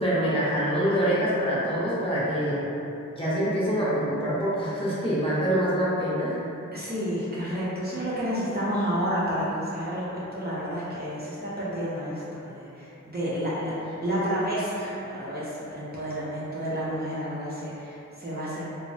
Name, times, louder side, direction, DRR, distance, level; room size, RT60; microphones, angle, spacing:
voice 1, 0.0-2.7 3.1-6.3, equal, 20° left, -10 dB, 0.7 m, -25 dB
voice 2, 6.7-18.6, equal, 30° right, -9 dB, 0.5 m, -30 dB
3.1 x 2.0 x 2.6 m, 2.9 s
wide cardioid pair, 75°, 31 cm